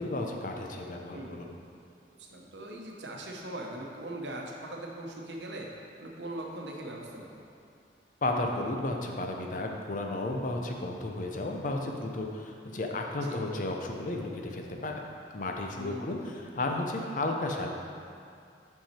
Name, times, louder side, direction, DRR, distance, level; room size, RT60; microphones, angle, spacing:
voice 1, 0.0-1.5 8.2-15.0 15.3-17.7, left 2 dB, 50° left, 2 dB, 0.6 m, -33 dB
voice 2, 1.1-1.5 2.2-5.7 6.0-7.4 13.2-13.4 15.7-16.3, right 1 dB, 85° right, 0 dB, 0.9 m, -40 dB
5.8 x 5.6 x 4.3 m, 2.4 s
head